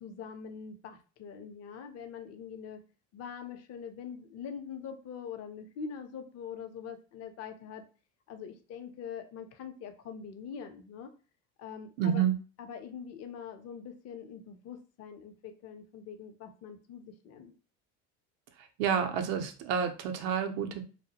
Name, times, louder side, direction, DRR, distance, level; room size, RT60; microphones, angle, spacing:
voice 1, 0.0-2.8 3.1-7.8 8.3-11.1 11.6-12.2 12.6-17.5, left 7 dB, 45° left, 7 dB, 0.5 m, -43 dB
voice 2, 12.0-12.3 18.6-20.9, right 8 dB, 80° right, 5 dB, 0.5 m, -29 dB
2.2 x 2.0 x 2.7 m, 0.35 s
supercardioid pair, 85°, 34 cm